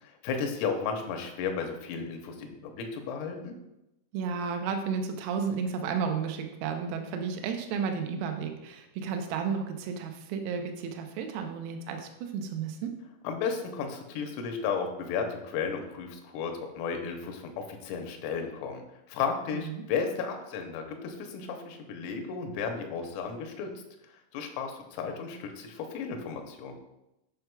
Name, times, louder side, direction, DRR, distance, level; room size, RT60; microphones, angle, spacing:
voice 1, 0.0-3.5 13.2-23.7 24.3-26.8, left 6 dB, 85° left, 4 dB, 3.4 m, -34 dB
voice 2, 4.1-12.9 19.5-19.8, right 6 dB, 90° right, 5 dB, 3.4 m, -32 dB
9.1 x 5.6 x 2.2 m, 0.90 s
omnidirectional pair, 5.9 m